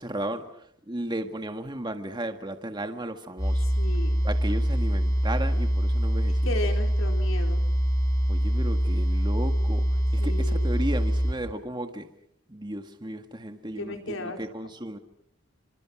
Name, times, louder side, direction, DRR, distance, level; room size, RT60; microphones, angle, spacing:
voice 1, 0.0-3.8 4.2-6.5 8.3-12.1 12.5-15.0, right 1 dB, 20° right, 7 dB, 1.8 m, -34 dB
sound 1, 3.4-11.3, equal, 15° left, 5.3 m, -24 dB
voice 2, 3.6-4.1 6.4-7.6 10.2-10.7 13.8-14.4, left 2 dB, 75° left, 4 dB, 4.3 m, -35 dB
29.5 x 26.5 x 6.1 m, 0.72 s
head